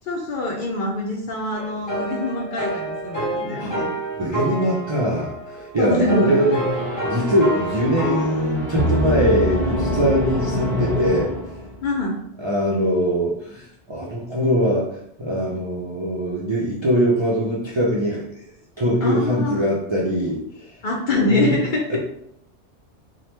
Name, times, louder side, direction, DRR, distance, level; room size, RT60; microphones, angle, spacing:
voice 1, 0.0-3.9 5.8-6.4 11.8-12.2 19.0-19.7 20.8-22.0, left 2 dB, 60° left, -1 dB, 0.6 m, -24 dB
sound 1, 1.5-8.2, right 1 dB, 15° left, 1.1 m, -29 dB
voice 2, 4.2-11.3 12.4-18.3 18.8-20.7 21.3-21.6 21.9-22.0, equal, 45° right, -6 dB, 0.3 m, -22 dB
sound 2, 6.3-11.9, equal, ahead, 0.7 m, -25 dB
2.9 x 2.2 x 3.2 m, 0.73 s
omnidirectional pair, 1.2 m